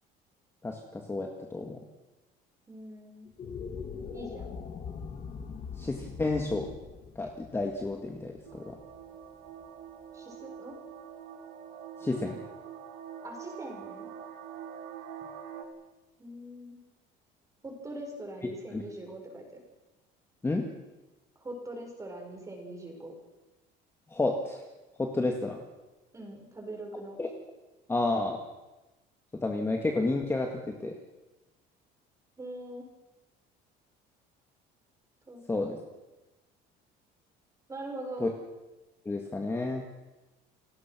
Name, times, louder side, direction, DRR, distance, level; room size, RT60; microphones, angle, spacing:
voice 1, 0.6-1.8 5.8-6.7 7.2-8.8 12.0-12.4 18.7-18.8 20.4-20.6 24.1-24.6 25.0-25.6 27.2-27.3 27.9-28.4 29.3-30.5 30.8-30.9 35.5-35.8 38.2-38.3 39.1-39.8, left 2 dB, 10° left, 2 dB, 2.0 m, -30 dB
voice 2, 2.7-3.3 4.1-4.5 10.1-10.8 13.2-14.1 16.2-16.8 17.6-19.6 21.4-23.2 26.1-27.2 32.4-32.9 35.3-35.4 37.7-38.3, right 1 dB, 15° right, 2 dB, 6.2 m, -42 dB
sound 1, 3.2-9.6, left 6 dB, 35° left, 2.6 m, -42 dB
sound 2, 8.4-15.6, right 8 dB, 85° right, 3.5 m, -45 dB
30.0 x 18.0 x 6.2 m, 1.1 s
cardioid pair, 150°, 19 cm